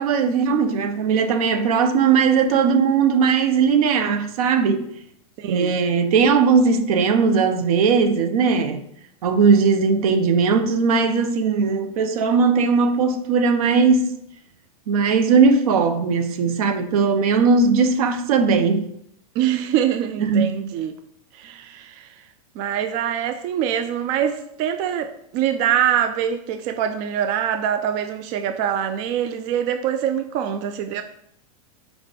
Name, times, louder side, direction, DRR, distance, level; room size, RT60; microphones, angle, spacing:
voice 1, 0.0-4.8 5.5-8.8 9.2-14.1 14.9-18.9 20.2-20.5, right 5 dB, 65° right, 0.7 m, -18 dB
voice 2, 5.4-5.8 19.3-21.0 21.3-22.3 22.5-31.0, right 9 dB, 35° right, 0.4 m, -24 dB
4.6 x 4.1 x 5.1 m
supercardioid pair, 140°, 20 cm